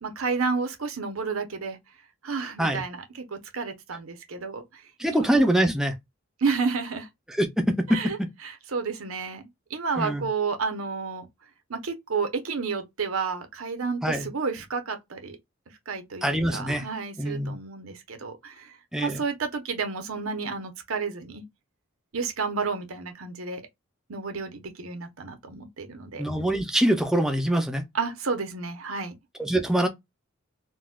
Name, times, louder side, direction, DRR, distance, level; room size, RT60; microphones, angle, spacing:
voice 1, 0.0-1.8 2.2-4.8 5.1-5.2 6.4-7.1 7.9-8.2 8.4-9.4 9.7-11.3 11.7-15.4 15.9-18.7 19.0-21.4 22.1-23.6 24.1-26.2 27.9-29.1, right 5 dB, 80° right, 0.8 m, -31 dB
voice 2, 5.0-5.9 7.3-8.3 10.0-10.3 14.0-14.3 16.2-16.9 17.2-17.6 18.9-19.2 26.2-27.8 29.4-29.9, right 1 dB, 5° right, 0.4 m, -24 dB
3.9 x 2.2 x 2.3 m
head